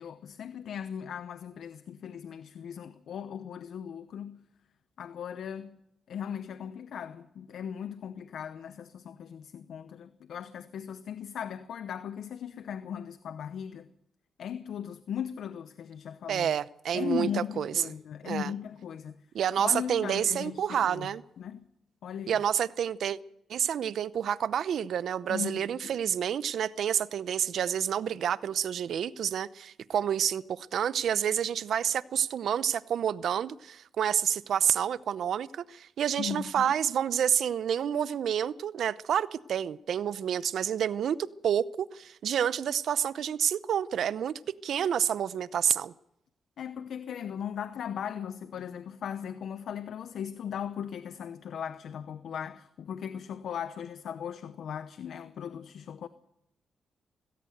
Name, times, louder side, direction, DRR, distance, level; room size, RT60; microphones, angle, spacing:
voice 1, 0.0-4.4 5.0-5.8 6.1-13.9 14.4-16.5 16.9-19.2 19.6-21.1 21.4-21.7 22.0-22.4 25.3-26.0 36.2-36.7 46.6-56.1, left 8 dB, 75° left, 0.9 m, -38 dB
voice 2, 16.3-17.3 17.6-17.7 18.3-18.5 19.3-21.2 22.3-23.2 23.5-41.2 41.4-44.3 44.6-45.9, right 9 dB, 75° right, 0.7 m, -29 dB
19.0 x 17.0 x 8.0 m
cardioid pair, 90°, 0 cm